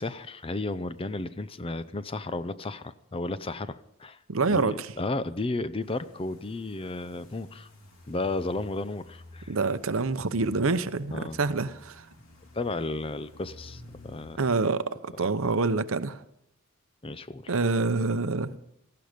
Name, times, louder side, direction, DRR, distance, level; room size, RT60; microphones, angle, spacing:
voice 1, 0.0-4.2 4.5-7.7 8.1-9.6 11.1-11.4 12.5-14.4 17.0-17.5, left 2 dB, 25° left, 0.6 m, -33 dB
voice 2, 4.3-4.9 9.5-12.1 14.4-16.2 17.5-18.5, right 3 dB, 70° right, 0.8 m, -26 dB
sound 1, 5.8-14.4, left 1 dB, 75° left, 3.1 m, -51 dB
18.0 x 14.5 x 5.2 m
head